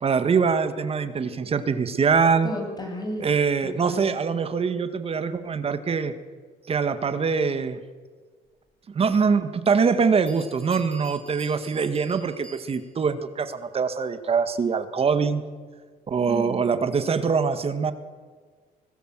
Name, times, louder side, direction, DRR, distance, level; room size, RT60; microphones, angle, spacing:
voice 1, 0.0-2.5 3.2-6.1 6.7-7.8 8.9-15.4 16.1-17.9, right 5 dB, 35° right, 10 dB, 1.9 m, -23 dB
voice 2, 2.4-3.3 3.6-4.0 16.3-16.6, left 1 dB, 25° left, 2 dB, 7.9 m, -33 dB
Bell, 9.9-10.0 10.3-13.1, right 3 dB, 5° left, 6.7 m, -48 dB
24.5 x 19.0 x 7.7 m, 1.5 s
cardioid pair, 110°, 17 cm